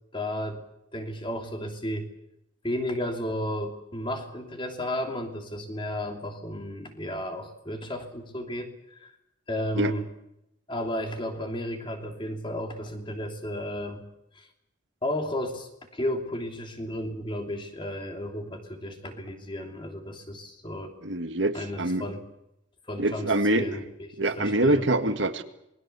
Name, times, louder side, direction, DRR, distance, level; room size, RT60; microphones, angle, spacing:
voice 1, 0.1-0.6 0.9-2.1 2.6-9.1 9.5-10.1 10.7-14.0 14.3-14.5 15.0-21.0 21.5-22.2 22.9-24.9, left 1 dB, 25° left, 4 dB, 3.0 m, -33 dB
voice 2, 21.0-22.0 23.0-23.7 24.2-25.4, right 2 dB, 75° right, 8 dB, 1.8 m, -25 dB
27.5 x 21.0 x 6.9 m, 0.84 s
head